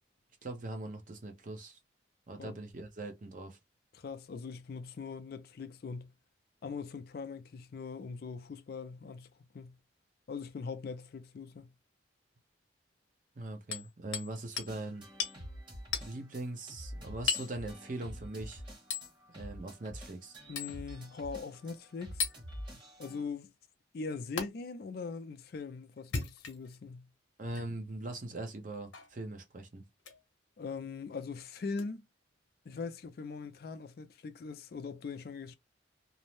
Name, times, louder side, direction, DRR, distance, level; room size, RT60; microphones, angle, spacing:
voice 1, 0.4-1.8 2.3-3.6 13.4-15.0 16.0-18.6 19.3-20.4 22.7-22.8 27.4-29.8, right 2 dB, 40° right, 0.6 m, -41 dB
voice 2, 3.9-6.1 6.6-9.3 9.5-9.8 10.3-11.7 20.5-22.3 23.0-23.5 23.9-27.1 30.6-32.1 32.7-35.5, left 4 dB, 50° left, 0.3 m, -41 dB
Hammer, 13.7-14.3 14.6-14.7 15.2-15.4 15.9-16.1 17.3-17.5 18.9-19.1 20.6-20.8 22.2-22.4 24.4-24.5 26.0-26.8 27.5-27.7 28.9-29.1 30.0-30.2 31.7-31.8, left 6 dB, 75° left, 0.7 m, -35 dB
sound 1, 14.7-23.2, equal, 25° right, 1.1 m, -47 dB
2.6 x 2.0 x 3.0 m
head